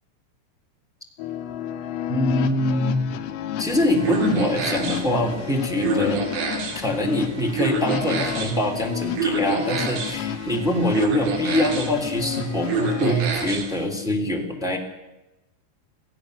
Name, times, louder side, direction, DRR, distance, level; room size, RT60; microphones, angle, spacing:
sound 1, 1.2-13.2, left 10 dB, 85° left, 4.0 m, -31 dB
voice 1, 2.1-3.0 3.6-6.2 6.7-14.8, left 1 dB, ahead, 1 dB, 1.8 m, -24 dB
sound 2, 3.6-13.8, right 3 dB, 60° right, 5.1 m, -29 dB
26.0 x 16.5 x 6.6 m, 1.0 s
omnidirectional pair, 5.9 m